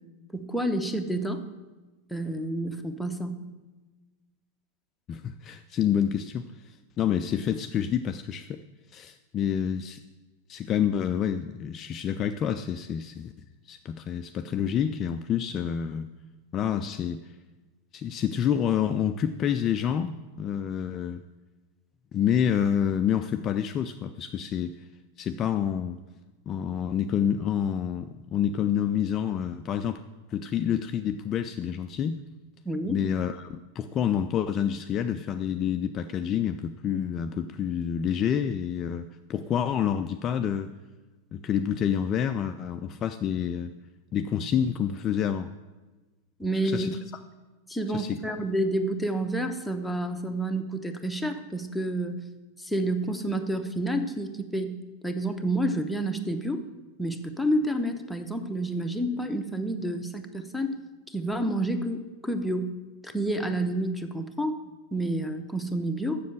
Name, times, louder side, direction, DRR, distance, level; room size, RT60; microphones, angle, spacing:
voice 1, 0.3-1.4 2.1-3.4 32.6-33.0 46.4-46.9 47.7-52.2 52.6-54.8 55.0-56.6 57.0-60.8 61.1-62.7 63.0-64.6 64.9-66.2, right 1 dB, ahead, 4 dB, 0.8 m, -29 dB
voice 2, 5.1-8.6 8.9-10.0 10.5-13.3 13.6-16.1 16.5-17.3 17.9-21.2 22.1-24.8 25.2-26.0 26.5-30.0 30.3-32.2 32.9-40.7 41.3-43.7 44.1-45.5 46.6-47.0 47.9-48.2, left 9 dB, 30° left, 8 dB, 0.3 m, -28 dB
7.2 x 6.7 x 7.6 m, 1.2 s
figure-of-eight pair, 90°, 0 cm